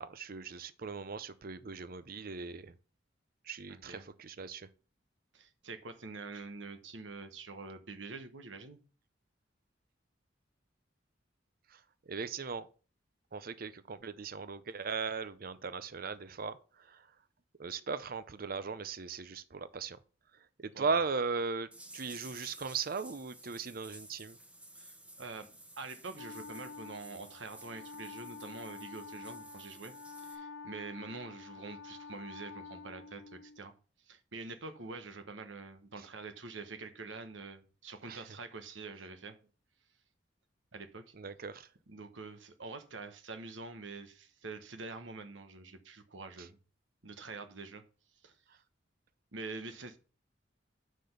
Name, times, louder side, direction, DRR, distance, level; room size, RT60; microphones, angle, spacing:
voice 1, 0.0-2.7 3.4-4.7 11.7-11.8 12.1-12.7 13.3-17.1 17.6-20.0 20.6-24.4 38.1-38.2 41.1-41.7 46.4-46.5, right 5 dB, 50° right, 0.6 m, -38 dB
voice 2, 3.7-4.0 5.3-8.8 20.7-20.9 24.7-25.5 25.8-29.9 30.2-33.7 34.1-39.4 40.7-41.1 41.9-46.6 47.0-47.8 48.2-48.3 49.3-50.0, right 3 dB, 85° right, 1.2 m, -46 dB
sound 1, 21.7-30.4, right 1 dB, 5° right, 1.2 m, -54 dB
Wind instrument woodwind instrument, 26.1-33.7, left 4 dB, 75° left, 1.0 m, -48 dB
5.9 x 5.1 x 6.6 m
head